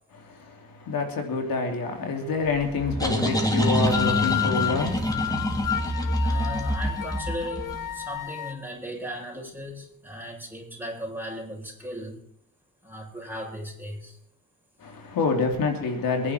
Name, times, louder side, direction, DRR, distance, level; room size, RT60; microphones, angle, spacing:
voice 1, 0.2-5.4 14.8-16.3, left 4 dB, 85° left, 2.9 m, -27 dB
sound 1, 2.5-8.0, equal, 10° left, 3.4 m, -26 dB
sound 2, 3.2-8.5, left 12 dB, 65° left, 1.0 m, -32 dB
voice 2, 6.2-12.2 12.8-14.2, equal, 5° right, 7.8 m, -37 dB
23.5 x 11.0 x 4.5 m
cardioid pair, 60°, 34 cm